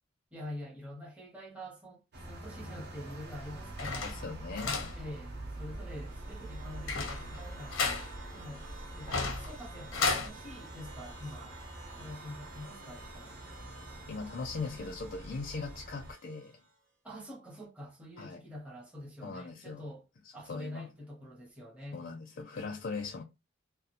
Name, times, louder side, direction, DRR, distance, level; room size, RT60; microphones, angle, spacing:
voice 1, 0.3-4.1 4.6-8.1 8.3-8.6 8.9-11.6 12.0-13.4 17.0-20.0 20.3-22.0, equal, 5° right, 0.6 m, -46 dB
sound 1, 2.1-16.1, right 1 dB, 55° right, 0.7 m, -47 dB
sound 2, 3.2-10.3, left 4 dB, 90° left, 0.6 m, -36 dB
voice 2, 4.0-4.9 14.1-16.5 18.2-18.4 19.2-19.8 20.5-20.9 21.9-23.2, left 4 dB, 50° left, 0.4 m, -39 dB
sound 3, 5.7-16.9, right 2 dB, 80° right, 1.0 m, -55 dB
2.2 x 2.0 x 2.8 m
head